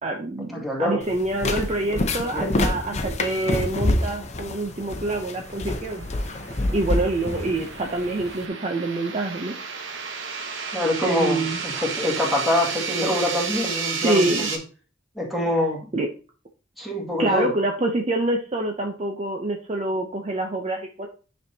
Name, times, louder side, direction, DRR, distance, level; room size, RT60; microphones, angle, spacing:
voice 1, 0.0-0.5 0.8-6.4 6.7-9.5 11.0-11.6 14.0-14.5 15.9-16.1 17.2-21.1, right 2 dB, 35° right, 3 dB, 0.6 m, -26 dB
voice 2, 0.5-1.0 1.8-2.0 2.3-2.5 10.7-14.5 15.2-15.9 16.8-17.5, left 1 dB, ahead, -2 dB, 2.1 m, -25 dB
sound 1, 1.0-8.4, left 2 dB, 35° left, 0.7 m, -27 dB
sound 2, 4.1-14.6, right 5 dB, 75° right, 1.1 m, -33 dB
9.4 x 5.3 x 2.8 m, 0.37 s
head